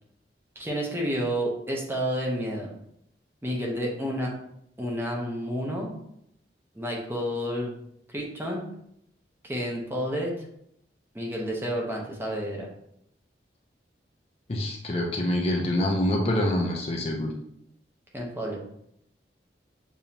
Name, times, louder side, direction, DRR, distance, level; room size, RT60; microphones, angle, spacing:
voice 1, 0.6-2.7 3.4-4.3 4.8-5.9 6.7-7.7 8.1-8.7 9.4-10.4 11.1-12.7 18.1-18.6, equal, 15° right, -1 dB, 0.8 m, -30 dB
voice 2, 14.5-17.3, left 1 dB, 35° left, 1 dB, 0.5 m, -26 dB
6.9 x 2.7 x 2.8 m, 0.75 s
head